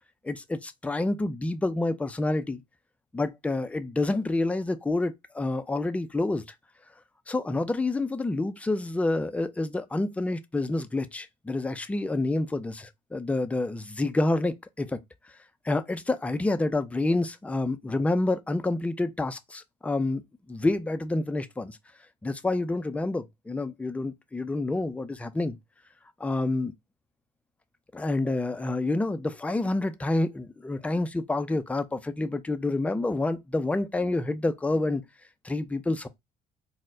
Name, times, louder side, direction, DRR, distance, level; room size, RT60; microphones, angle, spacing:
voice 1, 0.2-2.6 3.1-6.4 7.3-15.0 15.6-20.2 20.5-21.8 22.2-25.6 26.2-26.7 27.9-35.0 35.4-36.1, left 2 dB, 10° left, 0.3 m, -28 dB
4.1 x 2.1 x 2.5 m
cardioid pair, 110°, 17 cm